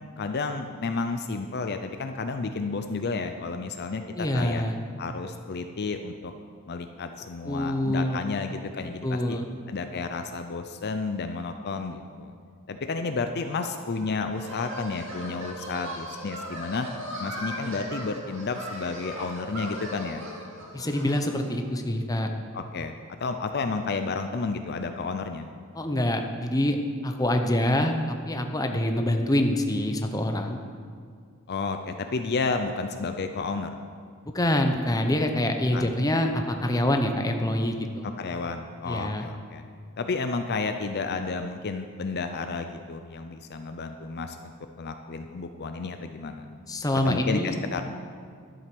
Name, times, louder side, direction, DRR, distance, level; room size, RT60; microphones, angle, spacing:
voice 1, 0.2-4.6 5.0-6.3 6.7-9.4 9.7-12.3 12.7-16.9 17.2-20.2 22.5-25.5 31.5-33.7 35.7-35.9 38.0-39.6 40.0-46.5 47.0-47.8, left 4 dB, 50° left, 7 dB, 0.5 m, -31 dB
voice 2, 4.1-4.8 7.5-8.3 9.0-9.5 20.7-22.3 25.7-26.8 27.0-30.6 34.3-38.1 38.8-39.3 46.7-47.6, left 1 dB, 15° left, 4 dB, 0.8 m, -26 dB
sound 1, 13.4-21.5, equal, 60° right, 2.3 m, -39 dB
12.0 x 7.6 x 6.1 m, 2.1 s
head